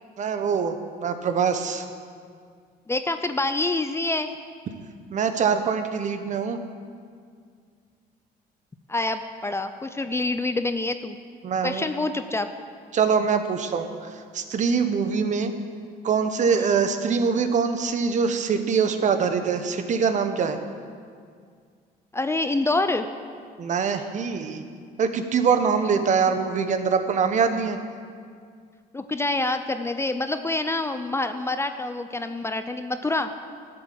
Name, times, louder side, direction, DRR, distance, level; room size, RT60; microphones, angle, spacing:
voice 1, 0.2-0.8 1.0-1.9 5.1-6.6 11.4-11.8 12.9-15.5 16.0-20.6 23.6-24.6 25.0-27.8, right 6 dB, 45° right, 8 dB, 1.0 m, -23 dB
voice 2, 2.9-4.3 8.9-11.2 11.6-12.5 16.6-16.7 22.1-23.1 28.9-33.3, left 2 dB, 15° left, 9 dB, 0.5 m, -26 dB
13.0 x 7.9 x 7.6 m, 2.1 s
cardioid pair, 110°, 17 cm